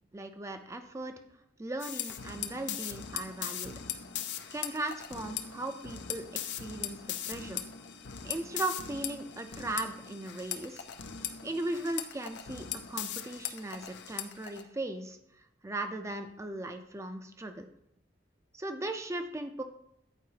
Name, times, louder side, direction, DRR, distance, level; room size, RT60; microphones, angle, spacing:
voice 1, 0.1-3.7 4.5-7.6 8.2-10.8 11.4-17.7 18.5-19.6, right 2 dB, 15° right, 7 dB, 0.5 m, -38 dB
sound 1, 1.8-14.6, left 9 dB, 70° left, 0.5 m, -39 dB
9.0 x 4.7 x 2.8 m, 0.77 s
head